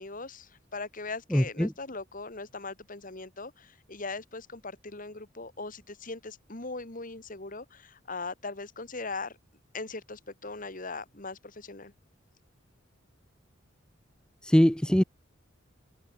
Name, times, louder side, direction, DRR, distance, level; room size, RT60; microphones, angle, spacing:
voice 1, 0.0-9.4 9.7-11.9, left 3 dB, 40° left, 2.3 m, -40 dB
voice 2, 1.3-1.7 14.4-15.0, equal, 5° left, 0.5 m, -22 dB
open air
head